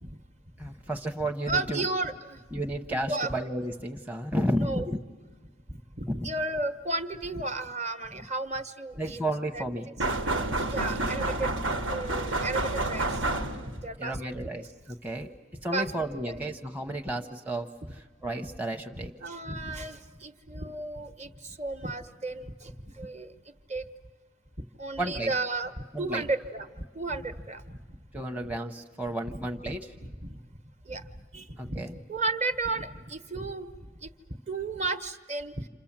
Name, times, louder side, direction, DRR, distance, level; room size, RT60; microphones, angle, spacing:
voice 1, 0.6-1.9 2.5-5.0 6.1-6.3 9.0-9.9 14.0-15.3 15.6-19.1 25.0-25.3 25.9-26.3 28.1-29.9 31.6-31.9, right 1 dB, 10° right, 2 dB, 0.8 m, -32 dB
voice 2, 1.5-2.4 3.1-3.3 4.5-4.9 6.0-9.2 9.5-9.6 10.6-11.6 11.9-14.6 15.7-15.9 16.2-16.4 19.0-23.3 23.7-23.8 24.8-28.0 29.7-29.8 30.0-30.4 30.9-31.8 32.1-35.7, right 2 dB, 35° right, 9 dB, 1.1 m, -34 dB
sound 1, 10.0-13.9, right 2 dB, 80° right, 1.5 m, -29 dB
29.0 x 27.0 x 7.4 m, 1.4 s
head